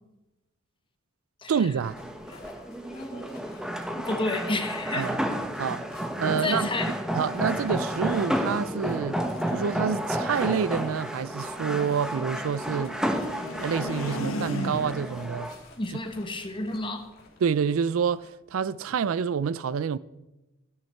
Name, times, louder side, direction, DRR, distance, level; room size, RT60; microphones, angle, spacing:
voice 1, 1.5-1.9 4.9-5.2 5.6-5.8 6.2-6.7 7.1-9.2 9.5-12.9 13.6-15.5 17.4-20.0, right 7 dB, 75° right, 0.4 m, -27 dB
sound 1, 1.8-15.5, equal, 5° right, 0.9 m, -31 dB
sound 2, 2.0-18.3, left 3 dB, 50° left, 3.6 m, -54 dB
voice 2, 2.9-3.5 3.9-5.1 6.3-6.9 15.8-17.1, left 2 dB, 25° left, 1.3 m, -31 dB
sound 3, 11.1-15.2, left 1 dB, 75° left, 1.6 m, -37 dB
15.0 x 11.0 x 4.5 m
head